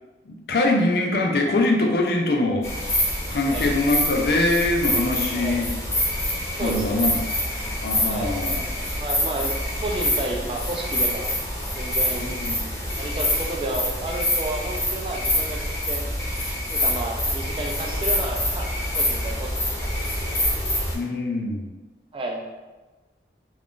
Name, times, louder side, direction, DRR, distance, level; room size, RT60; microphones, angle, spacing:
voice 1, 0.3-2.7 3.3-5.7 6.6-7.2 7.8-8.6 12.2-12.6 20.9-21.7, left 2 dB, 60° left, 1 dB, 0.4 m, -23 dB
sound 1, 2.6-20.9, left 1 dB, 15° left, 0.7 m, -26 dB
voice 2, 5.3-5.6 6.6-7.1 8.1-8.3 9.0-9.5 9.8-11.3 11.7-12.4 13.0-16.2 16.7-20.1 22.1-22.4, right 2 dB, 30° right, 1 dB, 0.3 m, -31 dB
2.4 x 2.4 x 3.5 m, 1.2 s
head